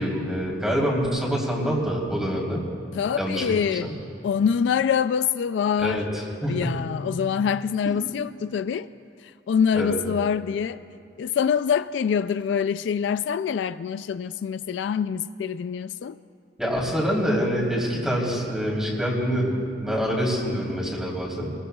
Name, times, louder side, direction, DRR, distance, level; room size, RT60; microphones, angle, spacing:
voice 1, 0.0-2.6 3.2-3.9 5.8-6.7 9.7-10.0 16.6-21.5, equal, 5° right, 3.3 m, -26 dB
voice 2, 2.9-3.9 4.2-6.0 6.5-8.9 9.5-10.8 11.2-16.2, left 7 dB, 70° left, 0.3 m, -25 dB
27.5 x 21.5 x 2.3 m
head